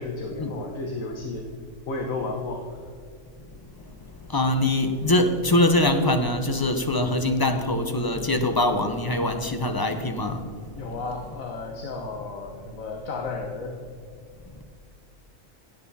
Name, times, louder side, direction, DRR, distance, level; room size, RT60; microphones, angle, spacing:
voice 1, 0.0-1.5 1.9-2.8 10.8-13.8, left 3 dB, 90° left, 2 dB, 1.6 m, -33 dB
voice 2, 4.3-10.4, left 1 dB, 20° left, 6 dB, 0.8 m, -23 dB
16.5 x 7.9 x 4.2 m, 2.3 s
omnidirectional pair, 1.4 m